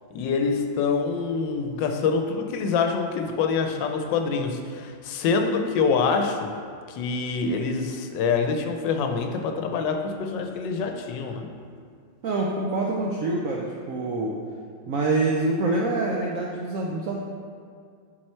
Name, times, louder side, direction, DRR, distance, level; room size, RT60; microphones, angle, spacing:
voice 1, 0.1-6.5 6.9-11.5, left 5 dB, 75° left, 5 dB, 1.2 m, -25 dB
voice 2, 12.2-14.4 14.9-17.2, right 2 dB, 75° right, -2 dB, 0.7 m, -26 dB
7.6 x 4.5 x 4.3 m, 2.2 s
omnidirectional pair, 2.0 m